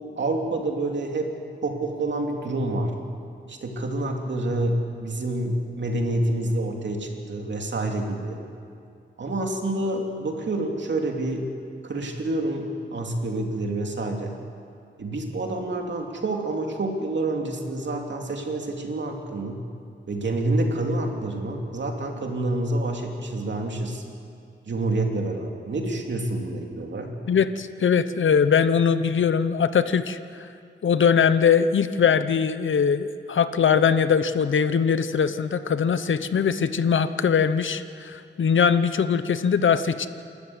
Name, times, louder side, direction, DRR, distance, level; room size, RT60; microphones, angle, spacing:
voice 1, 0.0-1.3 1.6-2.9 3.5-8.4 9.2-11.5 11.8-14.4 15.0-19.6 20.1-24.0 24.7-27.1, right 2 dB, 65° right, 2 dB, 2.8 m, -28 dB
voice 2, 27.3-30.2 30.8-40.1, left 7 dB, 80° left, 12 dB, 0.9 m, -21 dB
28.0 x 13.0 x 8.2 m, 2.4 s
wide cardioid pair, 95°, 20 cm